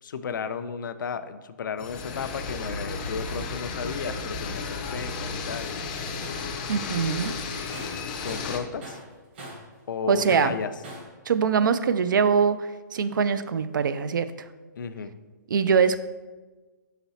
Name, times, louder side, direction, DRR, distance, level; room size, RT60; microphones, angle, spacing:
voice 1, 0.0-5.7 8.2-9.0 9.9-10.7 14.8-15.1, left 6 dB, 85° left, 11 dB, 0.4 m, -33 dB
sound 1, 1.8-8.6, left 4 dB, 25° left, 0.4 m, -33 dB
Tools, 6.2-6.4 6.7-8.6 8.8-9.7 10.3-11.1, right 1 dB, 35° right, 1.0 m, -41 dB
voice 2, 6.7-7.3 10.1-10.5 11.3-14.3 15.5-16.0, right 6 dB, 90° right, 13 dB, 0.4 m, -23 dB
5.8 x 4.0 x 4.1 m, 1.3 s
hypercardioid pair, 175°, 10 cm